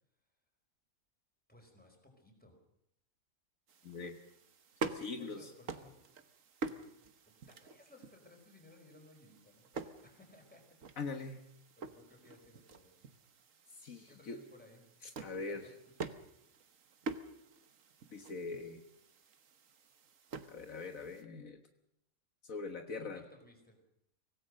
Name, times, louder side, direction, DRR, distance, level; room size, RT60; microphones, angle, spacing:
voice 1, 1.5-2.6 5.0-5.9 6.7-6.9 7.2-10.6 11.8-13.0 14.1-14.9 15.3-15.7 22.9-23.8, left 2 dB, 5° left, 2 dB, 4.9 m, -60 dB
sound 1, 3.7-21.2, right 4 dB, 65° right, 1.5 m, -47 dB
voice 2, 3.8-4.2 4.8-5.4 11.0-11.4 13.8-14.4 15.0-15.6 18.1-18.8 20.5-21.6 22.4-23.2, left 4 dB, 70° left, 6 dB, 1.8 m, -42 dB
25.0 x 17.5 x 6.5 m, 0.77 s
omnidirectional pair, 1.5 m